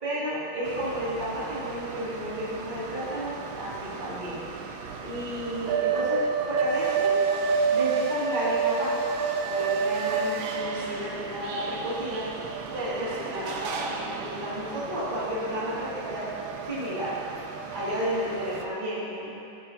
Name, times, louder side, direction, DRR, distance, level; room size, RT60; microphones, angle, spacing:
voice 1, 0.0-4.4 5.0-7.2 7.7-9.0 9.4-12.3 12.7-16.3 16.7-17.2 17.7-19.3, equal, 20° right, -11 dB, 2.6 m, -32 dB
sound 1, 0.6-18.6, right 5 dB, 70° right, 1.4 m, -31 dB
15.5 x 7.8 x 2.8 m, 2.7 s
omnidirectional pair, 2.4 m